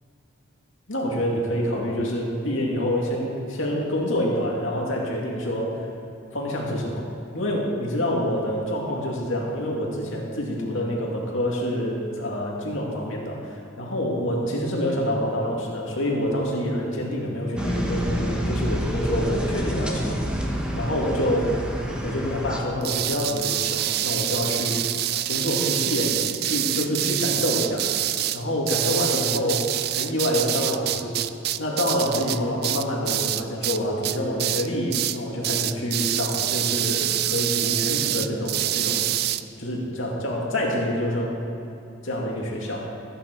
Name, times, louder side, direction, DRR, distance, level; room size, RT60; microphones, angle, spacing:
voice 1, 0.9-5.9 6.3-7.1 7.3-20.2 20.7-21.6 22.0-24.9 25.3-27.9 28.3-31.2 31.6-39.1 39.6-41.4 42.0-42.9, equal, 70° left, -2 dB, 2.3 m, -27 dB
sound 1, 17.6-22.6, equal, 5° right, 1.1 m, -28 dB
sound 2, 22.8-33.8 34.0-34.7 34.9-35.2 35.4-39.4, right 13 dB, 50° right, 0.3 m, -26 dB
14.5 x 9.2 x 4.6 m, 2.8 s
head